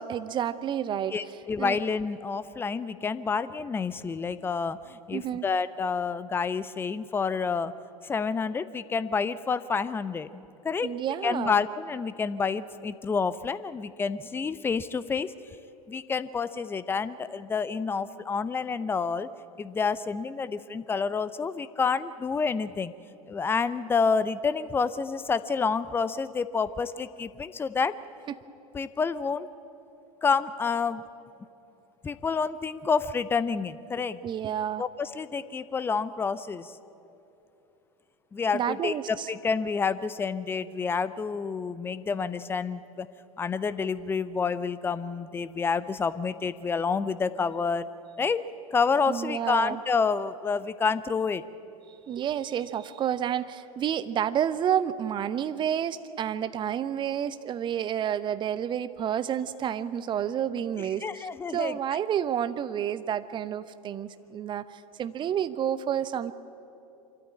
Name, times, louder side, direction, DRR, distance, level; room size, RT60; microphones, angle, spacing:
voice 1, 0.0-1.2 1.6-1.8 5.1-5.4 10.8-11.6 34.2-34.8 38.5-39.3 49.1-49.8 52.1-66.3, right 9 dB, 25° right, 14 dB, 0.8 m, -30 dB
voice 2, 1.1-7.7 8.0-10.3 10.6-10.9 11.2-15.3 15.9-19.3 19.6-22.9 23.3-28.0 28.7-29.5 30.2-31.0 32.0-34.2 34.8-36.7 38.3-43.1 43.4-47.9 48.2-51.4 61.0-61.8, left 5 dB, 10° left, 15 dB, 0.6 m, -28 dB
25.0 x 13.5 x 8.7 m, 2.8 s
figure-of-eight pair, 85°, 19 cm